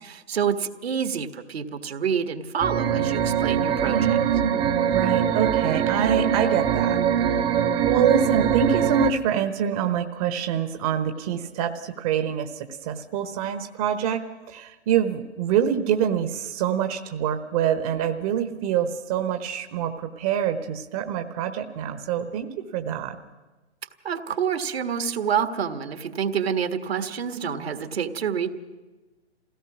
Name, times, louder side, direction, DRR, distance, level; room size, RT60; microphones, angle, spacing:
voice 1, 0.0-4.2 24.0-28.5, right 7 dB, 65° right, 8 dB, 1.7 m, -27 dB
sound 1, 2.6-9.1, right 8 dB, 15° right, 0.8 m, -23 dB
voice 2, 3.8-7.0 7.2-7.5 7.9-14.2 14.5-23.2, right 9 dB, 30° right, 6 dB, 1.1 m, -26 dB
27.5 x 17.0 x 6.1 m, 1.2 s
figure-of-eight pair, 125°, 34 cm